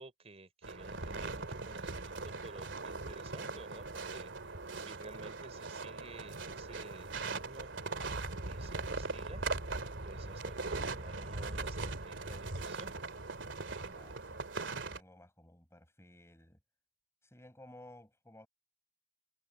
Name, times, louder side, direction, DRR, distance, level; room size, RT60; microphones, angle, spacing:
voice 1, 0.0-4.3 4.7-7.7 8.4-9.4 10.0-13.2, right 2 dB, 35° right, 3.8 m, -53 dB
sound 1, 0.6-15.0, right 3 dB, 80° right, 2.5 m, -40 dB
voice 2, 13.8-16.6 17.2-18.5, left 1 dB, 15° left, 6.9 m, -57 dB
head